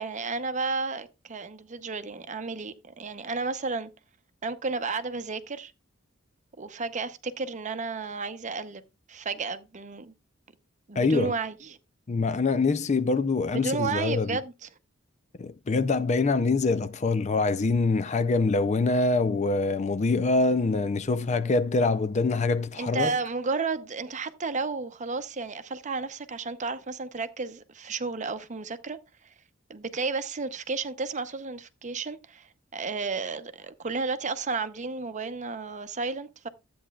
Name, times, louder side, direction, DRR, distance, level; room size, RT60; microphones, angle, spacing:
voice 1, 0.0-3.9 4.4-5.7 6.6-8.8 9.1-10.1 10.9-11.8 13.5-14.5 22.8-29.0 29.7-36.5, right 4 dB, 40° right, 0.7 m, -32 dB
voice 2, 11.0-11.3 12.1-14.4 15.4-23.2, left 3 dB, 35° left, 0.4 m, -25 dB
13.0 x 8.6 x 2.3 m
head